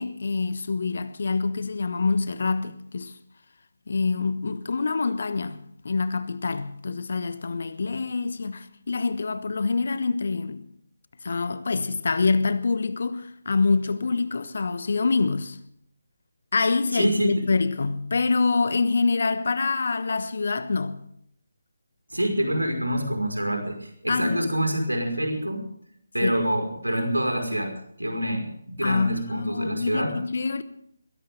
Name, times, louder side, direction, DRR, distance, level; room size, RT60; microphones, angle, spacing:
voice 1, 0.0-3.2 3.9-10.7 11.2-15.6 16.5-21.1 24.1-24.5 26.2-26.3 28.8-30.6, left 4 dB, 50° left, 1.1 m, -26 dB
voice 2, 16.9-17.3 22.1-25.6 26.1-27.7 28.0-30.1, right 1 dB, 80° right, 5.4 m, -26 dB
22.0 x 17.0 x 3.8 m
figure-of-eight pair, 150°, 0 cm